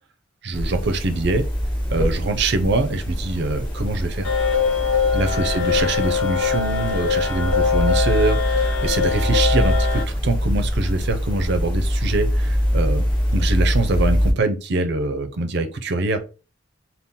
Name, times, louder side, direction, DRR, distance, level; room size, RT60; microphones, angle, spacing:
voice 1, 0.4-1.4 1.9-4.3 5.1-13.1 13.3-16.2, right 2 dB, 60° right, 8 dB, 0.6 m, -24 dB
sound 1, 0.5-14.3, equal, 25° left, 1.5 m, -23 dB
sound 2, 4.2-10.0, left 6 dB, 85° left, 1.0 m, -22 dB
3.7 x 2.2 x 4.1 m, 0.34 s
head